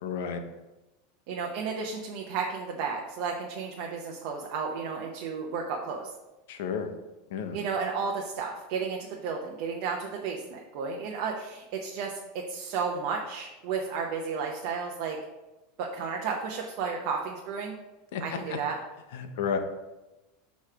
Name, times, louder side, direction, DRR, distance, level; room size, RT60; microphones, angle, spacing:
voice 1, 0.0-0.4 6.5-6.9 7.3-7.6 18.1-18.2 18.5-18.6 19.1-19.6, left 7 dB, 75° left, 7 dB, 0.7 m, -31 dB
voice 2, 1.3-6.1 7.5-15.2 15.8-17.8 18.2-18.8, right 5 dB, 55° right, 0 dB, 0.7 m, -33 dB
6.6 x 3.1 x 4.8 m, 1.0 s
supercardioid pair, 145°, 0 cm